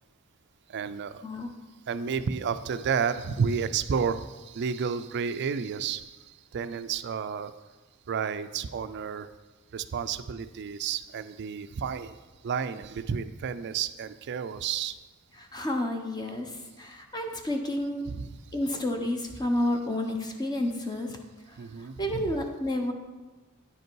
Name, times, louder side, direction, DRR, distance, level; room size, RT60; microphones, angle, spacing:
voice 1, 0.7-1.2 1.9-7.5 8.1-9.3 9.7-12.2 12.4-15.0 18.1-18.3 21.6-22.4, right 6 dB, 50° right, 12 dB, 0.4 m, -31 dB
voice 2, 15.4-18.0 18.5-21.2 21.5-22.9, left 1 dB, 20° left, 3 dB, 0.7 m, -30 dB
9.7 x 5.4 x 4.6 m, 1.2 s
head